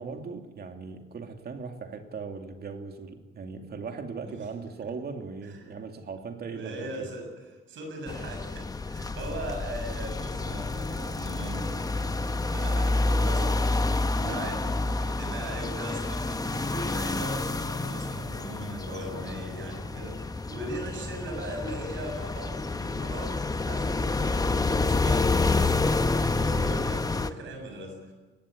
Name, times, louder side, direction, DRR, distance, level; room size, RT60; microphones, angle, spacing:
voice 1, 0.0-7.1 14.2-14.5, right 5 dB, 50° right, 5 dB, 2.7 m, -38 dB
voice 2, 4.1-4.5 4.8-4.9 5.4-5.8 6.5-11.8 12.5-13.6 14.1-28.1, right 1 dB, 75° right, 4 dB, 7.0 m, -39 dB
sound 1, 8.1-27.3, left 3 dB, 20° left, 1.0 m, -28 dB
20.5 x 15.5 x 9.9 m, 1.3 s
cardioid pair, 90°, 20 cm